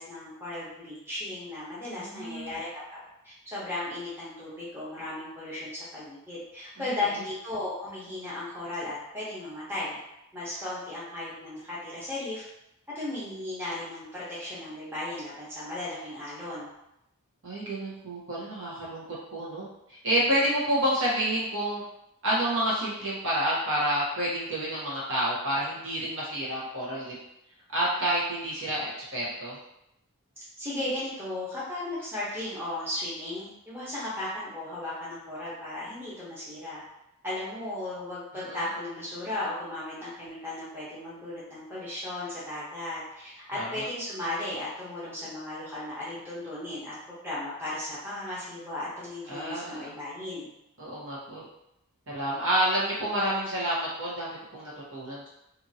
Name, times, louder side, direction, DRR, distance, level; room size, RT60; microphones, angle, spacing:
voice 1, 0.0-3.0 3.2-10.0 10.3-12.4 12.9-16.7 30.6-36.8 37.2-46.9 47.2-50.5, left 2 dB, 10° right, -9 dB, 0.9 m, -36 dB
voice 2, 1.9-2.5 6.8-6.9 17.4-19.0 19.3-21.8 22.2-27.1 27.7-29.6 38.3-38.7 43.6-43.8 49.3-49.9 50.8-51.5 52.1-55.3, right 1 dB, 60° right, -7 dB, 1.1 m, -29 dB
2.7 x 2.5 x 2.7 m, 0.83 s
head